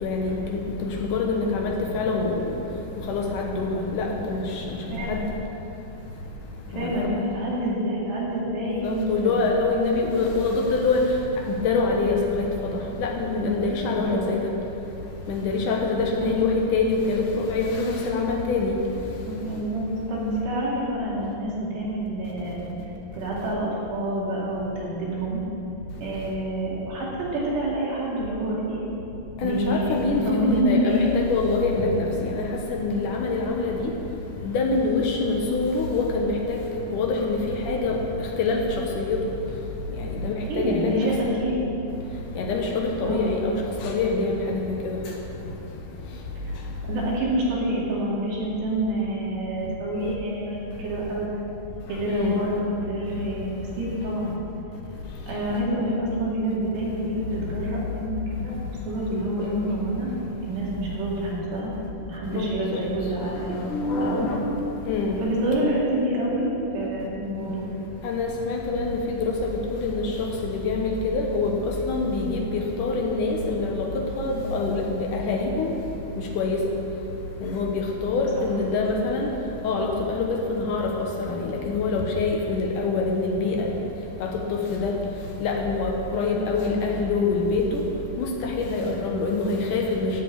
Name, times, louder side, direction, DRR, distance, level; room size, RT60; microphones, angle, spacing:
voice 1, 0.0-2.5 3.1-4.4 5.1-5.2 6.7-7.1 8.8-11.0 11.5-14.4 15.3-18.8 29.4-33.9 34.4-36.6 36.9-38.0 38.4-38.6 39.0-39.2 40.0-41.4 42.4-43.5 43.8-45.0 52.1-52.4 62.3-62.8 63.7-64.5 64.9-65.2 68.0-73.9 74.2-75.7 76.4-76.6 77.4-79.3 79.6-83.7 84.2-84.9 85.4-87.8 88.2-90.1, left 3 dB, 70° left, 1 dB, 2.1 m, -25 dB
voice 2, 4.9-5.3 6.7-9.8 13.8-14.3 16.1-16.4 19.3-22.7 23.1-25.4 26.0-28.8 29.4-31.1 32.6-32.7 40.0-40.2 40.5-41.6 43.0-43.5 46.4-46.6 46.9-51.4 51.9-54.4 55.3-58.5 58.9-60.1 60.5-61.7 62.1-63.7 64.0-64.3 65.2-66.5 66.7-67.7, right 1 dB, 85° right, -6 dB, 4.6 m, -27 dB
13.0 x 5.1 x 8.6 m, 2.9 s
omnidirectional pair, 4.7 m